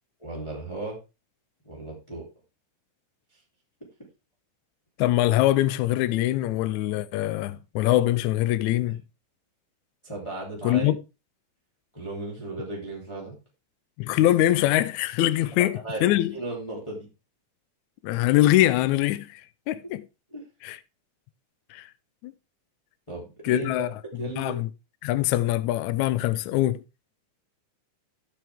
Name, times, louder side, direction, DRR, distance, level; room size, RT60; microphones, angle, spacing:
voice 1, 0.2-1.0 1.6-2.2 10.0-10.9 11.9-13.4 15.5-17.1 20.3-20.4 23.1-23.7 24.2-24.5, right 2 dB, 10° left, 2.9 m, -35 dB
voice 2, 5.0-9.0 10.6-11.0 14.0-16.3 18.0-19.4 19.7-20.1 20.6-20.8 21.7-21.9 22.2-22.3 23.4-23.9 24.4-24.7 25.0-26.8, left 14 dB, 75° left, 1.9 m, -23 dB
12.0 x 7.7 x 3.5 m
omnidirectional pair, 3.6 m